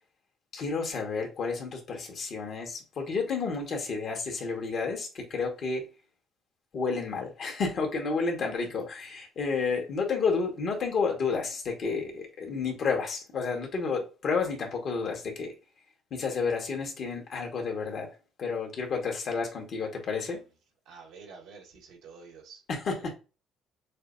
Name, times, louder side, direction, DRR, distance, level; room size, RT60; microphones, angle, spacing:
voice 1, 0.5-5.9 6.7-15.5 16.1-18.1 18.4-20.4 22.7-23.1, left 4 dB, 55° left, 1.7 m, -31 dB
voice 2, 20.9-22.6 23.0-23.1, right 5 dB, 80° right, 1.8 m, -49 dB
6.4 x 2.3 x 2.7 m
supercardioid pair, 65°, 0 cm